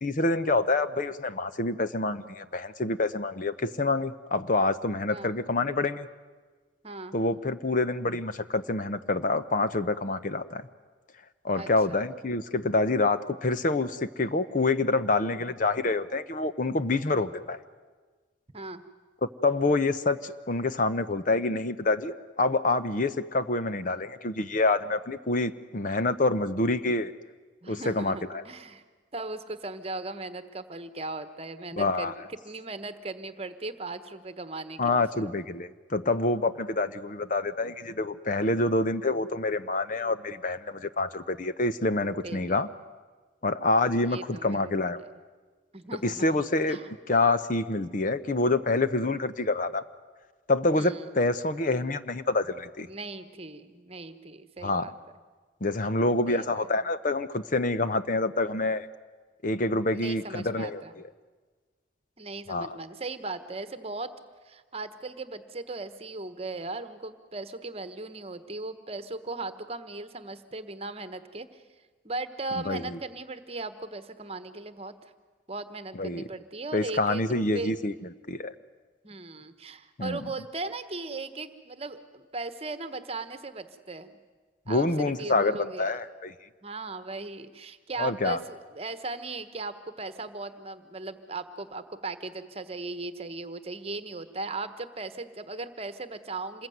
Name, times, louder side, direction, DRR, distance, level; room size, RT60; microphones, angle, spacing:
voice 1, 0.0-6.1 7.1-10.6 11.4-17.6 19.2-27.1 27.7-28.4 31.8-32.1 34.8-42.7 43.4-45.0 46.0-46.8 47.1-49.8 50.5-52.9 54.6-54.9 55.6-58.9 59.4-61.0 62.5-62.7 72.6-73.0 75.9-76.2 76.7-77.9 78.3-78.5 80.0-80.2 84.7-86.3 88.0-88.4, left 2 dB, 40° left, 12 dB, 0.8 m, -27 dB
voice 2, 6.8-7.2 11.5-12.0 17.1-17.3 18.5-18.8 27.6-28.8 29.1-35.3 42.2-42.6 44.1-44.7 45.0-45.1 45.7-46.9 50.7-51.1 52.9-54.9 56.3-56.7 59.9-60.9 62.2-64.1 64.4-71.6 72.0-74.9 75.5-77.7 79.0-84.2 84.7-86.0 86.6-96.7, right 3 dB, 30° right, 11 dB, 1.3 m, -38 dB
27.0 x 21.0 x 9.4 m, 1.4 s
head